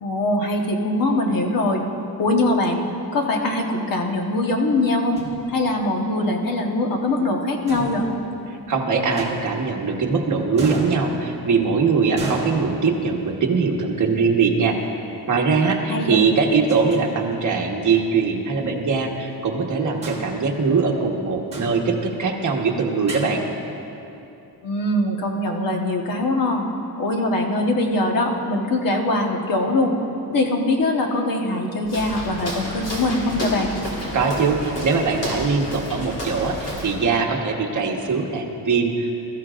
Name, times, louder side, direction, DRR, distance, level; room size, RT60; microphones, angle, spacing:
voice 1, 0.0-1.8 2.2-2.8 3.1-5.2 5.5-8.1 15.9-16.2 24.6-26.7 27.0-29.9 30.3-33.8, left 2 dB, 55° left, 1 dB, 1.3 m, -22 dB
sound 1, 5.2-6.0 7.7-8.7 9.2-10.0 10.6-11.6 12.2-13.5 14.7-14.8 16.4-17.0 17.3-17.4 17.9-18.0 20.0-21.1 21.5-22.4 23.1-23.3, right 2 dB, 15° right, 1.6 m, -34 dB
voice 2, 8.5-14.8 15.3-23.4 34.1-39.2, right 4 dB, 45° right, 1 dB, 1.3 m, -21 dB
Walk footsteps, 31.8-37.1, equal, 35° left, 2.6 m, -31 dB
21.0 x 13.5 x 2.5 m, 2.9 s
wide cardioid pair, 170°, 41 cm